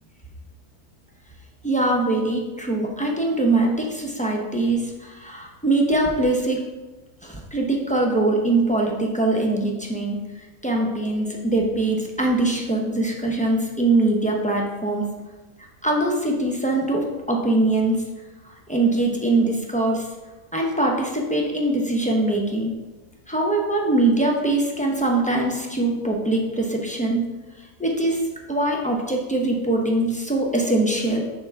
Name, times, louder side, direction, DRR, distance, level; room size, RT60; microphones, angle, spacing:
voice 1, 1.6-6.6 7.2-10.2 10.6-15.1 15.8-18.0 18.5-20.1 20.5-22.7 23.3-27.2 27.8-31.2, right 2 dB, 10° left, -1 dB, 0.3 m, -22 dB
7.5 x 3.5 x 5.7 m, 1.2 s
omnidirectional pair, 1.7 m